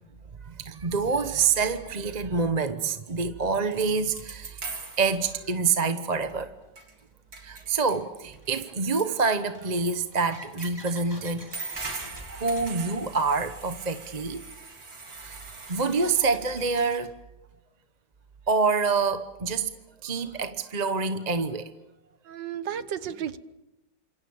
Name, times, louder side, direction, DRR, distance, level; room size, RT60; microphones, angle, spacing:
voice 1, 0.6-4.6 5.0-6.5 7.4-11.5 12.3-14.4 15.2-15.4 15.7-17.1 18.5-19.7 20.0-21.7, right 4 dB, 30° right, 0.9 m, -26 dB
sound 1, 3.3-3.4 3.7-5.2 6.3-6.4 6.8-7.0 7.3-8.0 8.3-9.1 9.7-10.0 10.3-10.8 11.3-16.1, right 4 dB, 90° right, 4.4 m, -41 dB
sound 2, 6.6-6.7 7.6-17.0, right 1 dB, 10° right, 3.8 m, -48 dB
voice 2, 22.2-23.4, right 9 dB, 70° right, 1.8 m, -33 dB
29.0 x 27.0 x 7.1 m
omnidirectional pair, 2.0 m